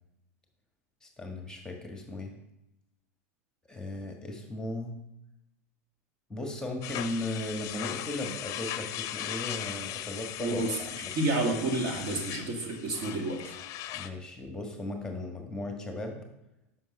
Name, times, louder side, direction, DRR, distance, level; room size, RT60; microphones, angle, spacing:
voice 1, 1.0-2.3 3.7-5.0 6.3-10.7 11.0-11.1 12.1-12.2 13.9-16.2, left 1 dB, 10° left, 2 dB, 1.6 m, -37 dB
sound 1, 6.8-14.1, left 12 dB, 45° left, 0.6 m, -38 dB
voice 2, 10.4-10.8 11.1-13.5, right 2 dB, 50° right, 2 dB, 2.0 m, -30 dB
7.6 x 6.0 x 5.3 m, 0.89 s
hypercardioid pair, 100°, 8 cm